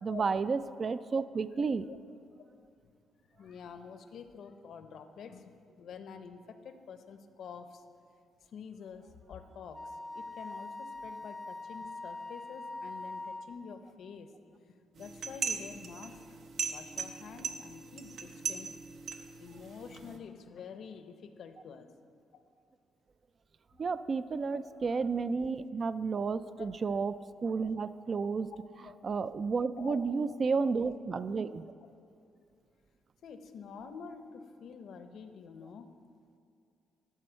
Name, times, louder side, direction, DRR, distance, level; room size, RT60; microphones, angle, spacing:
voice 1, 0.0-1.9 23.8-27.1 27.4-28.5 29.0-31.6, right 4 dB, 40° right, 14 dB, 0.3 m, -31 dB
voice 2, 3.3-7.8 8.5-14.3 14.6-16.4 16.7-18.7 19.4-21.9 24.5-24.6 26.1-26.3 26.6-26.7 28.9-29.0 29.8-30.0 30.3-30.7 33.2-35.9, left 6 dB, 65° left, 9 dB, 0.6 m, -48 dB
Wind instrument woodwind instrument, 9.7-13.6, left 2 dB, ahead, 0.6 m, -43 dB
sound 1, 15.0-20.2, right 5 dB, 65° right, 0.7 m, -39 dB
12.0 x 4.5 x 5.6 m, 2.4 s
cardioid pair, 90°, 0 cm